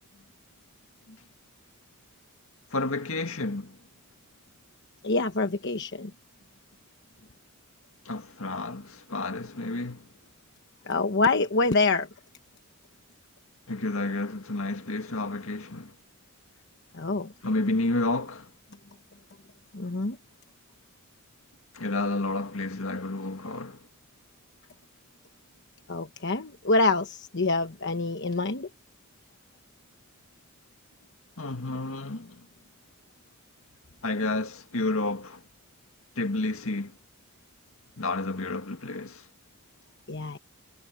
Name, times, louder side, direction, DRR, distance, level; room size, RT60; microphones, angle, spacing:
voice 1, 2.7-3.8 8.1-10.1 13.7-15.9 17.4-18.5 21.7-23.9 31.4-32.4 34.0-35.4 36.2-37.0 38.0-39.3, left 2 dB, 70° left, 2.0 m, -30 dB
voice 2, 5.0-6.1 10.9-12.1 16.9-17.3 19.7-20.2 25.9-28.7 40.1-40.4, left 3 dB, 55° left, 1.1 m, -26 dB
head